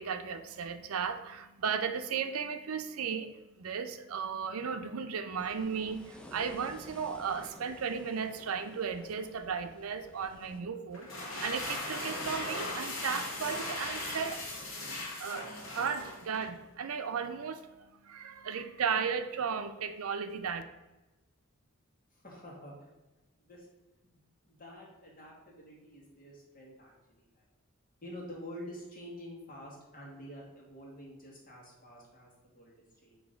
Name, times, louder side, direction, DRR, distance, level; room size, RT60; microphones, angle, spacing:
voice 1, 0.0-3.3 3.6-14.4 15.2-15.5 15.7-17.7 18.0-20.6, right 6 dB, 85° right, 9 dB, 0.5 m, -35 dB
sound 1, 5.4-10.6, left 1 dB, 5° left, 0.4 m, -53 dB
sound 2, 10.9-16.5, left 2 dB, 70° left, 1.5 m, -38 dB
voice 2, 22.1-22.9 23.4-23.7 24.1-27.5 28.0-33.2, equal, 40° left, -3 dB, 1.7 m, -48 dB
6.1 x 3.2 x 5.0 m, 1.1 s
head